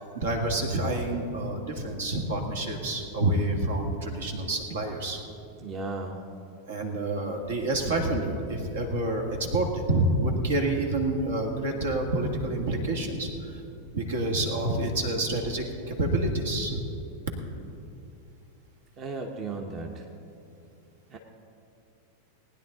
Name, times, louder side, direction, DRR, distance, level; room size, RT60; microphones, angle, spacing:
voice 1, 0.0-5.2 6.7-13.6 13.9-16.8, right 1 dB, 60° right, 3 dB, 1.7 m, -28 dB
voice 2, 5.6-6.2 19.0-20.1 21.1-21.2, right 3 dB, 30° right, 2 dB, 1.1 m, -35 dB
19.5 x 10.0 x 3.8 m, 2.8 s
figure-of-eight pair, 90°, 0 cm